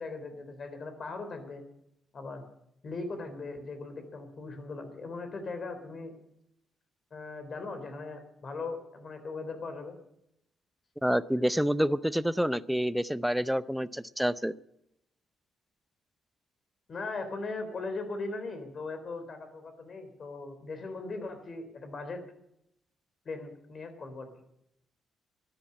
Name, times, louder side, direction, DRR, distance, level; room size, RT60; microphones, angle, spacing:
voice 1, 0.0-1.6 2.1-2.4 2.8-6.2 7.1-10.0 16.9-22.2 23.3-24.3, left 3 dB, 45° left, 8 dB, 3.7 m, -39 dB
voice 2, 11.0-14.5, equal, ahead, 16 dB, 0.6 m, -28 dB
12.5 x 10.5 x 8.5 m, 0.80 s
cardioid pair, 90°, 0 cm